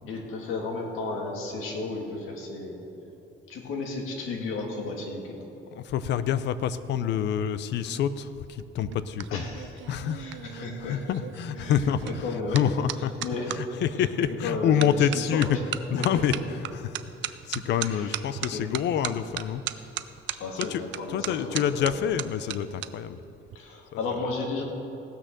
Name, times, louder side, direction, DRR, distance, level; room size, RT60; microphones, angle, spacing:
voice 1, 0.0-2.9 3.5-5.4 9.3-9.7 10.2-11.0 11.6-11.8 12.0-12.8 13.2-13.5 14.3-15.6 16.0-16.2 17.8-18.8 20.4-22.0 23.5-24.6, left 3 dB, 85° left, 0 dB, 2.1 m, -34 dB
voice 2, 5.7-9.4 9.9-10.3 10.5-12.2 12.5-13.2 13.5-15.6 15.9-16.3 16.7-19.8 20.6-20.8 21.1-23.2 23.9-24.2, left 9 dB, 60° left, 14 dB, 0.5 m, -27 dB
sound 1, 8.6-13.6 14.2-14.5 14.8-22.9 23.2-23.6, right 13 dB, 65° right, 0.5 m, -36 dB
16.5 x 6.3 x 6.7 m, 2.9 s
cardioid pair, 175°, 21 cm